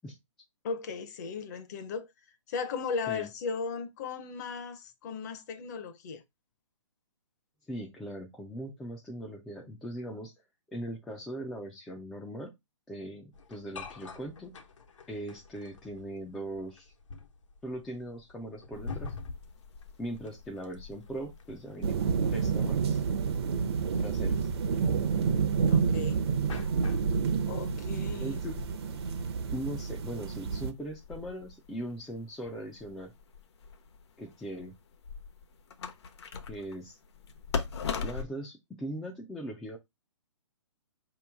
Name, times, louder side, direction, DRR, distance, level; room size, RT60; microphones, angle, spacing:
voice 1, 0.6-2.1 2.5-6.2 25.7-26.2 27.5-28.4, left 5 dB, 35° left, 0.7 m, -36 dB
voice 2, 7.7-10.3 10.7-12.5 12.9-14.5 15.1-16.9 17.6-19.1 20.0-23.0 24.0-24.5 28.2-28.6 29.5-33.1 34.2-34.7 36.5-37.0 38.0-39.8, right 1 dB, 5° left, 0.3 m, -40 dB
sound 1, 13.3-27.2, left 4 dB, 75° left, 1.2 m, -47 dB
sound 2, 18.7-38.2, left 5 dB, 60° left, 0.9 m, -43 dB
sound 3, 21.8-30.7, right 6 dB, 55° right, 0.7 m, -29 dB
4.9 x 3.0 x 3.3 m
hypercardioid pair, 155°, 16 cm